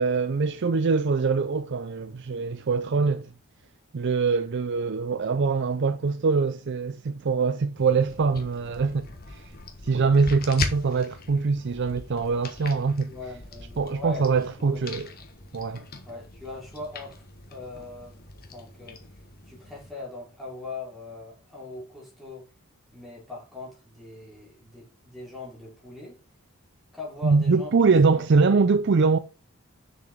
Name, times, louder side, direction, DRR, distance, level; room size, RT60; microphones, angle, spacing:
voice 1, 0.0-3.3 3.9-9.4 9.8-13.1 13.8-15.1 15.5-15.8 27.2-29.2, right 4 dB, 55° right, 0.5 m, -23 dB
sound 1, 7.8-19.9, left 3 dB, 45° left, 1.4 m, -40 dB
voice 2, 13.1-15.1 16.0-17.2 17.5-18.2 18.5-19.1 19.4-22.5 22.9-26.2 26.9-27.8 28.1-28.2, left 2 dB, ahead, 4.2 m, -40 dB
6.9 x 6.7 x 3.6 m
head